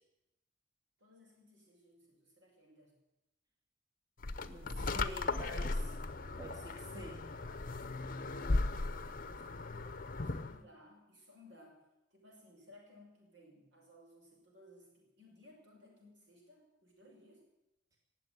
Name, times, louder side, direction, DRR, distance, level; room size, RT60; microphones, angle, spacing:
voice 1, 1.0-2.9 4.3-5.0 8.9-11.8 12.1-17.4, left 1 dB, 75° right, -1 dB, 6.2 m, -61 dB
sound 1, 4.2-10.6, left 2 dB, 45° left, 0.8 m, -37 dB
voice 2, 4.9-5.9 6.4-7.3, right 1 dB, 20° right, -1 dB, 2.5 m, -47 dB
19.0 x 7.6 x 9.4 m, 0.91 s
head